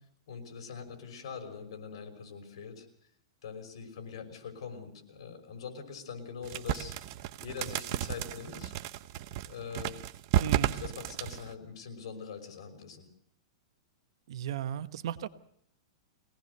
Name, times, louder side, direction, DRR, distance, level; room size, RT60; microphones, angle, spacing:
voice 1, 0.3-2.9 3.4-6.9 7.4-8.7 9.5-10.0 10.5-13.1, left 6 dB, 70° left, 5 dB, 5.9 m, -43 dB
sound 1, 6.4-11.5, right 13 dB, 40° right, 0.9 m, -33 dB
voice 2, 10.4-10.7 14.3-15.3, right 11 dB, 65° right, 12 dB, 1.2 m, -35 dB
23.0 x 18.5 x 6.7 m, 0.71 s
supercardioid pair, 160°, 3 cm